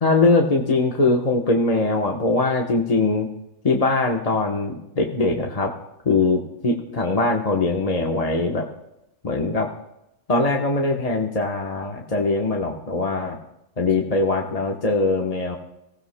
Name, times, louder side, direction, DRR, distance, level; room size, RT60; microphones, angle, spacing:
voice 1, 0.0-3.3 3.6-5.7 6.0-8.6 9.2-9.7 10.3-13.4 13.8-15.6, left 3 dB, 30° left, 0 dB, 1.0 m, -21 dB
25.5 x 16.0 x 2.2 m, 0.87 s
omnidirectional pair, 1.4 m